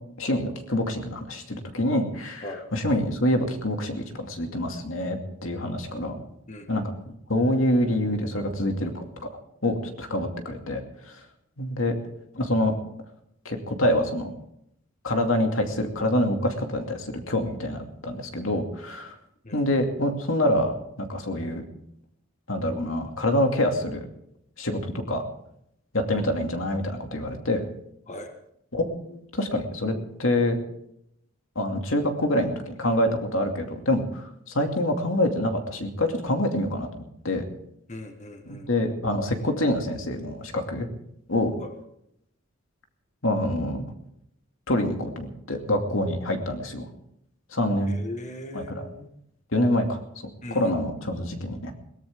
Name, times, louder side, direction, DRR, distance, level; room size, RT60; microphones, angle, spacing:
voice 1, 0.2-6.2 6.7-6.9 7.3-9.0 9.6-10.8 11.1-11.2 11.6-11.9 12.3-12.8 13.4-14.3 15.0-19.1 19.5-21.6 22.5-24.1 24.6-25.2 25.9-27.6 28.7-30.6 31.6-37.5 38.5-40.9 41.3-41.5 43.2-43.8 44.7-46.9 47.5-48.0 48.5-48.9 49.5-50.0 50.5-51.7, left 1 dB, 80° left, 4 dB, 2.5 m, -26 dB
voice 2, 37.9-38.7 41.6-41.7 47.9-49.1 50.4-50.7, left 2 dB, 35° left, 5 dB, 1.7 m, -39 dB
22.0 x 17.5 x 3.7 m, 0.75 s
head